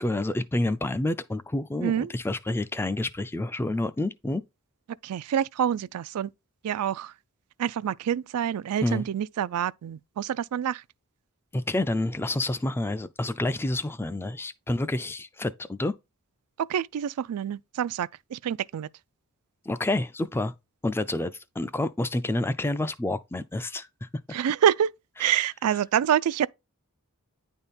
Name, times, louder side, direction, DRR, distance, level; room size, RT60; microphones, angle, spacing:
voice 1, 0.0-4.4 8.8-9.0 11.5-15.9 19.7-20.5 20.8-24.1, left 2 dB, 10° left, 0.3 m, -28 dB
voice 2, 1.8-2.1 5.0-6.3 6.6-7.1 7.6-10.8 16.6-18.9 24.3-24.9 25.2-26.5, right 9 dB, 85° right, 0.3 m, -27 dB
9.6 x 3.6 x 4.2 m
head